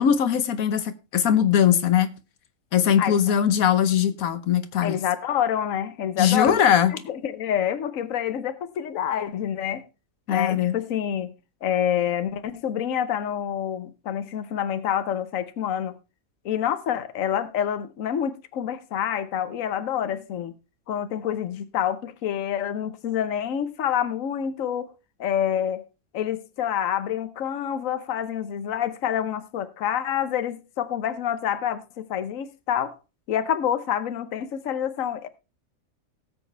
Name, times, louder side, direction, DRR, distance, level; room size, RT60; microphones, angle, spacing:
voice 1, 0.0-2.1 2.7-5.0 6.2-6.9 10.3-10.7, left 9 dB, 90° left, 1.4 m, -20 dB
voice 2, 4.8-6.6 6.9-9.8 10.3-11.3 11.6-16.0 16.4-20.5 20.9-24.9 25.2-25.8 26.1-32.9 33.3-35.3, left 9 dB, 70° left, 1.3 m, -27 dB
17.5 x 7.7 x 3.3 m
omnidirectional pair, 1.4 m